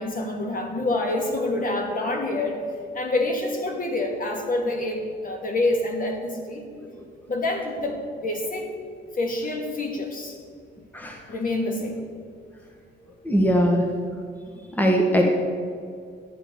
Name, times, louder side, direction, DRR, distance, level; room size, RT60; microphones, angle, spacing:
voice 1, 0.0-2.6 2.9-6.6 7.3-8.7 9.1-10.4 11.3-12.0, left 2 dB, 45° left, 2 dB, 2.5 m, -27 dB
voice 2, 13.2-13.8 14.8-15.2, equal, 10° left, 1 dB, 1.6 m, -20 dB
12.0 x 8.9 x 7.0 m, 2.3 s
cardioid pair, 90°, 20 cm